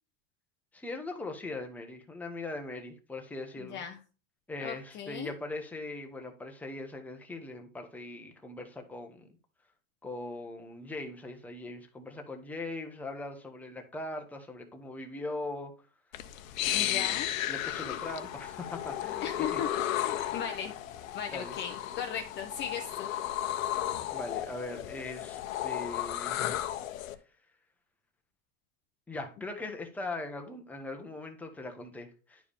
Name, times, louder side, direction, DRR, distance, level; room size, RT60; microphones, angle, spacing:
voice 1, 0.7-3.8 4.5-9.3 10.0-15.7 16.6-17.2 17.5-19.6 21.3-21.6 24.1-26.4 29.1-32.4, left 2 dB, 5° left, 3 dB, 0.9 m, -40 dB
voice 2, 3.6-4.0 4.6-5.3 16.7-17.3 19.2-20.7 21.1-23.1, left 8 dB, 30° left, 5 dB, 0.7 m, -37 dB
sound 1, 16.1-27.1, left 12 dB, 85° left, 1.0 m, -34 dB
10.0 x 4.7 x 3.5 m, 0.33 s
supercardioid pair, 150°, 39 cm